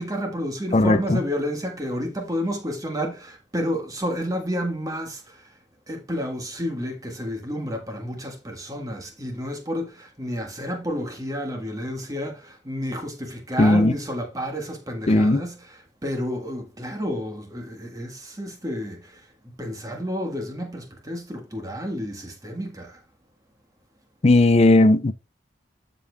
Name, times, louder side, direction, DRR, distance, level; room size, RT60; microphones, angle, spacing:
voice 1, 0.0-5.5 5.9-19.2 19.6-23.0, equal, 20° right, 1.6 m, -30 dB
voice 2, 0.7-1.2 13.6-13.9 15.1-15.4 24.2-25.1, left 2 dB, 35° left, 0.5 m, -16 dB
14.0 x 5.2 x 2.4 m
head